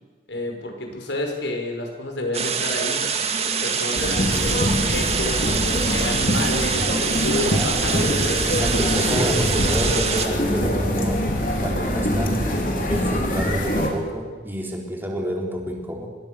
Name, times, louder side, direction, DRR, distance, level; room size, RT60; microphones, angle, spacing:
voice 1, 0.3-3.1 3.6-5.5 5.9-8.2, left 1 dB, 80° left, 3 dB, 5.7 m, -29 dB
sound 1, 2.3-10.3, right 6 dB, 35° right, 2.1 m, -25 dB
sound 2, 3.9-13.9, equal, 45° left, 4.0 m, -24 dB
voice 2, 7.4-7.7 8.4-11.3 11.6-16.1, equal, 10° right, 0 dB, 3.8 m, -28 dB
25.5 x 21.5 x 7.0 m, 1.5 s
head